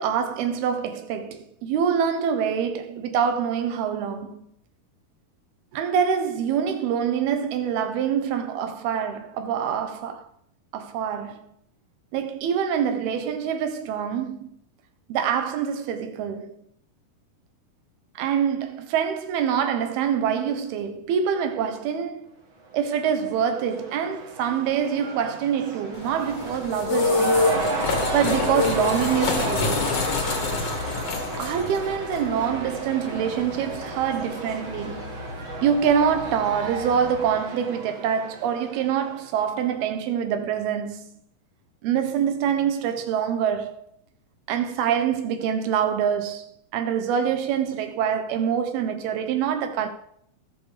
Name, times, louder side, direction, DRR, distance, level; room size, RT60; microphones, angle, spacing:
voice 1, 0.0-4.4 5.7-10.3 10.7-11.4 12.1-14.5 15.1-16.6 18.2-22.3 22.7-27.5 28.1-30.0 31.4-35.1 35.6-41.1 41.8-43.8 44.5-49.9, right 8 dB, 85° right, 3.1 m, -25 dB
Cheering / Crowd, 22.6-39.5, right 3 dB, 40° right, 2.5 m, -33 dB
sound 1, 25.9-37.4, left 4 dB, 50° left, 2.4 m, -28 dB
20.5 x 7.5 x 5.1 m
omnidirectional pair, 4.4 m